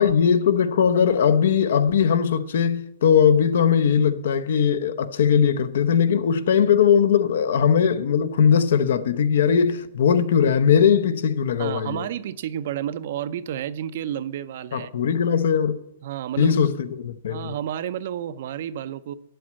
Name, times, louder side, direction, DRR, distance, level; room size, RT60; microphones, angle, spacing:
voice 1, 0.0-12.0 14.7-15.8 16.4-17.5, left 7 dB, 70° left, 0.8 m, -20 dB
voice 2, 11.6-14.9 16.0-16.6 17.3-19.1, right 10 dB, 55° right, 0.5 m, -31 dB
8.5 x 7.7 x 8.4 m
hypercardioid pair, 160°, 0 cm